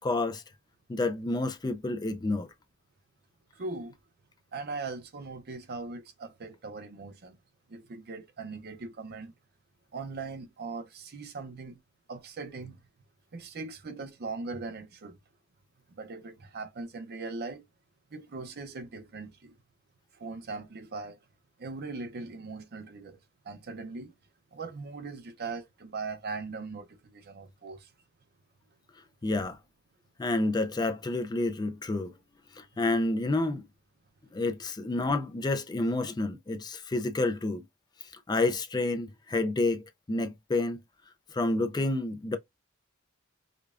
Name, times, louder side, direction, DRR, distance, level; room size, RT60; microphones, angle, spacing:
voice 1, 0.0-0.4 0.9-2.5 29.2-29.6 30.2-32.1 32.5-33.7 34.3-37.6 38.0-40.8 41.3-42.4, left 2 dB, 20° left, 0.4 m, -29 dB
voice 2, 3.5-4.0 4.5-7.4 7.7-9.3 9.9-11.8 12.1-12.8 13.3-15.2 15.9-17.6 18.1-19.6 20.1-21.2 21.6-23.2 23.4-24.1 24.5-27.9, right 3 dB, 50° right, 0.6 m, -40 dB
5.0 x 2.2 x 2.4 m
head